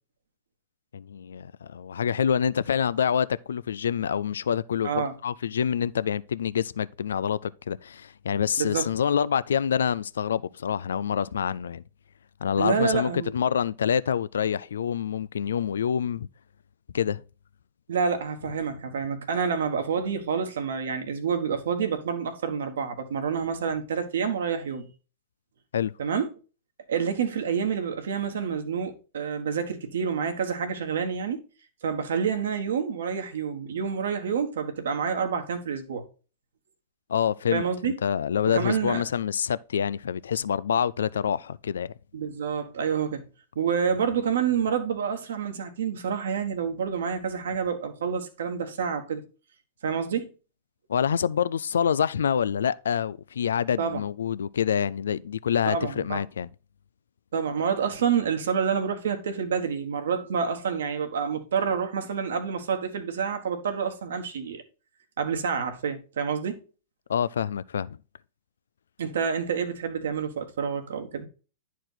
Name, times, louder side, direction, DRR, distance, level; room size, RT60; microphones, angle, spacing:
voice 1, 0.9-11.8 12.4-16.3 16.9-17.2 25.7-25.9 37.1-41.9 50.9-56.5 67.1-68.0, left 8 dB, 80° left, 0.3 m, -26 dB
voice 2, 8.6-8.9 12.6-13.3 17.9-24.9 26.0-26.3 26.9-31.4 31.8-36.1 37.5-37.9 38.5-39.0 42.1-43.2 43.5-49.2 49.8-50.3 53.8-54.0 55.7-56.2 57.3-64.6 65.2-66.6 69.0-71.3, right 6 dB, 75° right, 1.4 m, -28 dB
10.0 x 4.6 x 3.9 m
hypercardioid pair, 110°, 0 cm